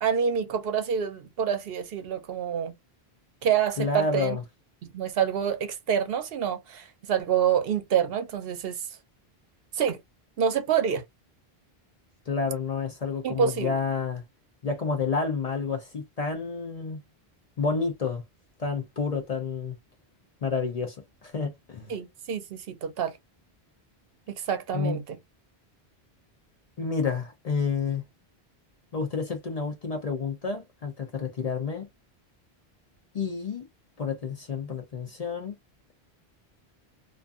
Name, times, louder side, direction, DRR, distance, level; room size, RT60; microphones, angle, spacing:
voice 1, 0.0-2.7 3.4-4.4 4.8-8.8 9.7-10.0 10.4-11.0 13.2-13.8 21.9-23.2 24.3-25.2, right 8 dB, 70° right, 0.8 m, -27 dB
voice 2, 3.8-4.4 12.3-14.2 14.6-17.0 17.6-18.2 18.6-19.8 20.4-21.0 21.2-21.9 24.7-25.0 26.8-28.0 28.9-31.9 33.1-33.7 34.0-35.6, left 5 dB, 45° left, 0.6 m, -29 dB
2.5 x 2.4 x 2.3 m
omnidirectional pair, 1.1 m